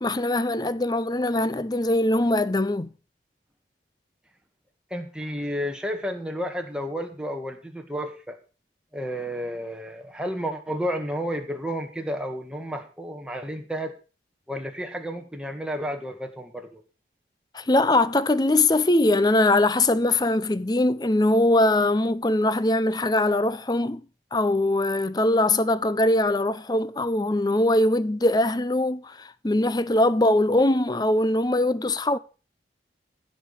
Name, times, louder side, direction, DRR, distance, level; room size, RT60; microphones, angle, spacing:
voice 1, 0.0-2.9 17.5-24.0 24.3-32.2, left 1 dB, 20° left, 0.6 m, -22 dB
voice 2, 4.9-8.4 8.9-13.9 14.5-16.8, equal, 5° right, 1.7 m, -31 dB
15.0 x 5.3 x 7.2 m
head